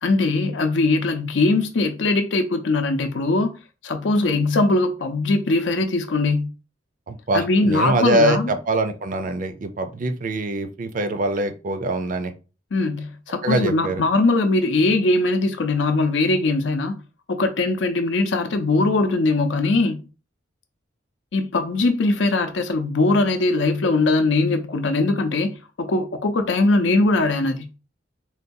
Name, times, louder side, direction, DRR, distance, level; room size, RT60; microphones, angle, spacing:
voice 1, 0.0-3.5 3.8-6.5 7.3-8.5 12.7-17.0 17.3-20.0 21.3-25.5 25.8-27.7, left 2 dB, 80° left, 0.6 m, -21 dB
voice 2, 7.1-12.3 13.4-14.0, right 1 dB, 45° right, 0.4 m, -23 dB
3.9 x 2.3 x 2.6 m
head